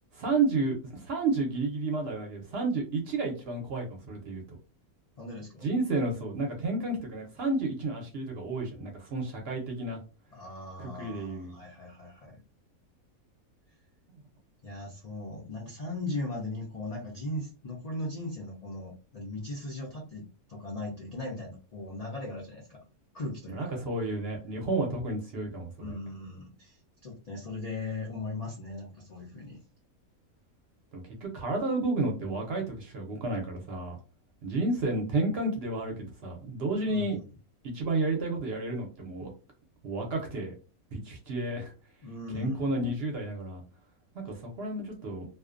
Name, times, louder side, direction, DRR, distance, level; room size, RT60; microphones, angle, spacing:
voice 1, 0.1-4.6 5.6-10.0 10.8-11.5 14.1-14.2 23.5-25.9 30.9-34.0 34.4-37.2 37.6-39.3 39.8-40.5 40.9-41.7 42.3-43.6 44.2-45.3, right 2 dB, 55° right, 1 dB, 0.7 m, -31 dB
voice 2, 5.2-5.7 10.3-12.4 14.6-22.8 23.1-23.8 25.8-29.6 36.9-37.2 42.0-42.7, left 2 dB, 85° left, -2 dB, 0.3 m, -38 dB
2.4 x 2.1 x 2.4 m, 0.33 s
omnidirectional pair, 1.5 m